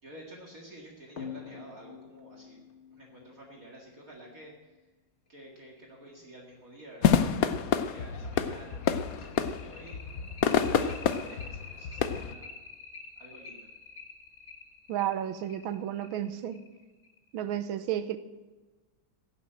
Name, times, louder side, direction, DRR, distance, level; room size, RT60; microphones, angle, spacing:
voice 1, 0.0-2.6 2.9-4.8 5.3-10.0 10.5-12.5 13.2-13.7, right 1 dB, 45° right, -1 dB, 2.4 m, -50 dB
sound 1, 1.2-4.3 5.8-5.9 6.3-6.4 6.8-6.9 7.3-17.4, left 5 dB, 40° left, 1.4 m, -48 dB
sound 2, 7.0-12.3, left 8 dB, 60° left, 1.0 m, -28 dB
voice 2, 14.9-16.6 17.3-18.2, right 11 dB, 90° right, 11 dB, 1.5 m, -32 dB
16.5 x 7.3 x 8.9 m, 1.2 s
omnidirectional pair, 2.2 m